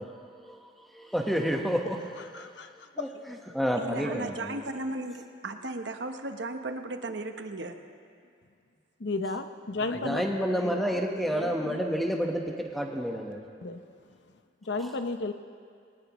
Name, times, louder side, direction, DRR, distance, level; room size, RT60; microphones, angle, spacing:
voice 1, 0.0-2.5 3.0-4.6 9.9-13.5 14.8-14.9, equal, ahead, 1 dB, 1.2 m, -30 dB
voice 2, 2.3-2.7 9.0-10.6 13.6-13.8 14.7-15.3, left 3 dB, 65° left, 8 dB, 0.7 m, -33 dB
voice 3, 3.8-7.7, right 2 dB, 65° right, 6 dB, 1.0 m, -36 dB
21.0 x 19.0 x 3.1 m, 2.3 s
head